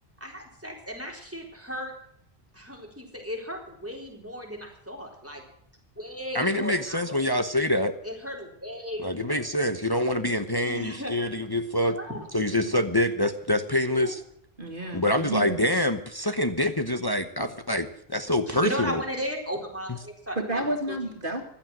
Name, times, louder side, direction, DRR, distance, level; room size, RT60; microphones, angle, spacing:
voice 1, 0.2-1.9 2.5-5.4 6.0-7.0 8.0-9.4 10.7-11.1 11.9-12.3 13.9-14.1 18.5-20.6, equal, 15° right, 0 dB, 4.0 m, -35 dB
voice 2, 6.3-7.9 9.0-12.0 12.3-14.2 14.9-19.0 19.9-20.0, left 1 dB, 25° left, 7 dB, 1.0 m, -26 dB
voice 3, 14.6-15.6 20.4-21.4, right 1 dB, 55° right, 3 dB, 2.5 m, -30 dB
15.5 x 12.0 x 7.7 m, 0.67 s
omnidirectional pair, 1.1 m